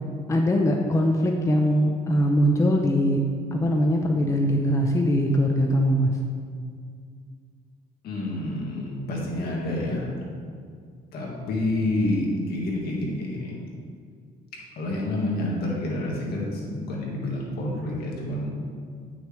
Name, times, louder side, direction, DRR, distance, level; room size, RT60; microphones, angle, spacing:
voice 1, 0.3-3.2 3.5-6.1, equal, 20° left, 2 dB, 0.6 m, -21 dB
voice 2, 8.0-10.2 11.1-13.6 14.8-18.5, left 1 dB, 70° left, -3 dB, 2.0 m, -28 dB
9.0 x 6.1 x 3.4 m, 2.1 s
cardioid pair, 110°, 17 cm